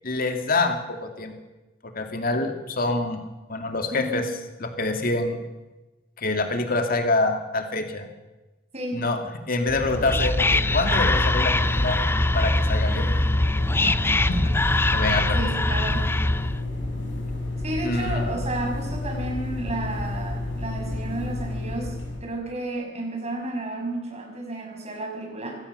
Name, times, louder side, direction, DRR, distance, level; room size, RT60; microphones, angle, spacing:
voice 1, 0.0-1.3 1.9-3.2 3.5-4.2 4.6-5.4 6.2-8.1 8.9-9.2 9.5-12.0 12.3-13.1 13.8-14.0 14.3-14.5 14.9-15.4 17.8-18.2, left 2 dB, 50° left, 5 dB, 2.4 m, -26 dB
voice 2, 3.9-4.2 8.7-9.0 15.3-16.0 17.6-21.9 22.2-25.6, right 1 dB, 35° right, 2 dB, 6.0 m, -32 dB
Whispering, 9.7-16.6, left 2 dB, 15° left, 0.6 m, -23 dB
sound 1, 9.8-22.2, left 2 dB, 85° left, 6.8 m, -31 dB
23.5 x 18.0 x 6.8 m, 1.1 s
head